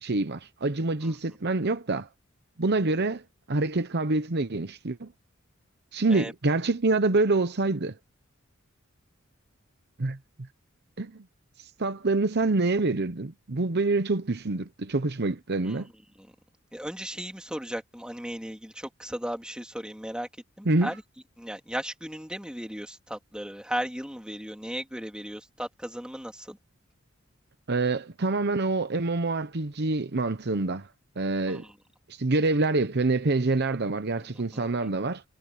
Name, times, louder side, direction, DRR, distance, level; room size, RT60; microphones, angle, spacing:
voice 1, 0.0-2.1 2.6-3.2 3.5-5.1 5.9-7.9 10.0-10.2 11.0-11.1 11.6-15.9 20.7-20.9 27.7-30.9 31.2-31.6 32.1-35.2, right 3 dB, 55° right, 0.9 m, -26 dB
voice 2, 16.7-20.3 20.6-21.0 21.4-26.6 31.5-31.7 34.5-34.6, equal, 5° right, 3.1 m, -36 dB
head